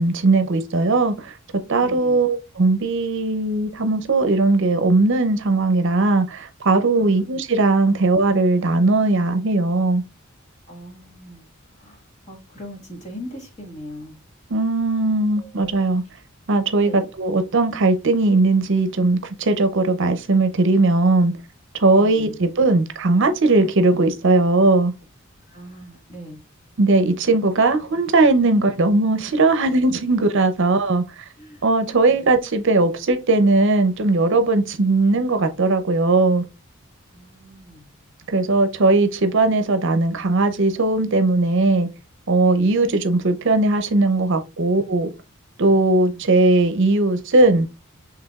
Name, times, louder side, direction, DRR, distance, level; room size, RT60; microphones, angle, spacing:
voice 1, 0.0-1.3 1.7-10.0 14.5-16.0 16.5-21.3 21.8-24.9 26.8-31.2 31.6-36.4 38.3-41.9 42.3-45.1 45.6-47.7, right 2 dB, 60° right, 0.6 m, -18 dB
voice 2, 1.8-2.2 6.9-7.3 10.7-11.4 11.8-12.0 12.3-14.2 15.4-15.8 16.8-17.1 21.9-22.4 25.5-26.4 31.4-32.3 37.1-37.9 42.5-42.8 45.7-46.2, equal, 35° left, 1.6 m, -40 dB
6.6 x 3.4 x 2.3 m
head